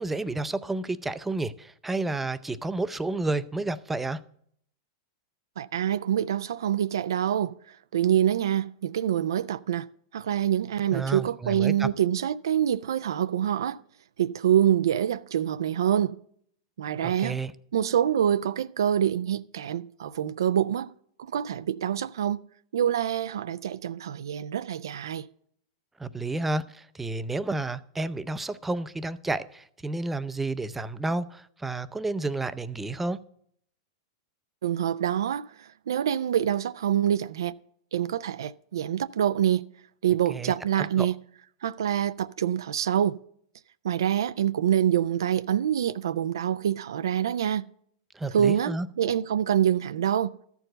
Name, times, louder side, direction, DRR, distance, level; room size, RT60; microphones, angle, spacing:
voice 1, 0.0-4.2 10.9-11.9 17.0-17.5 26.0-33.2 40.3-41.1 48.1-48.9, right 2 dB, 10° right, 0.5 m, -31 dB
voice 2, 5.6-7.5 7.9-9.9 10.1-13.8 14.2-16.2 16.8-17.4 17.7-20.9 21.2-22.4 22.7-25.3 34.6-37.5 37.9-39.6 40.0-41.2 41.6-43.1 43.8-47.6 48.3-50.3, right 10 dB, 80° right, 0.4 m, -26 dB
13.0 x 4.6 x 7.7 m
hypercardioid pair, 115°, 2 cm